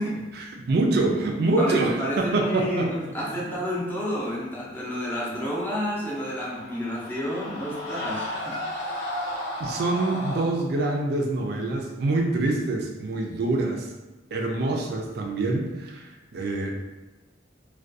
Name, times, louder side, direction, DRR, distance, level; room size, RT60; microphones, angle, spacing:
voice 1, 0.4-2.9 9.6-13.9 14.3-16.7, right 2 dB, 60° right, 2 dB, 0.4 m, -25 dB
voice 2, 1.6-8.6, equal, 10° left, -6 dB, 0.5 m, -30 dB
Screaming, 6.0-10.5, left 1 dB, 70° left, 0.6 m, -34 dB
2.3 x 2.2 x 2.6 m, 1.1 s
head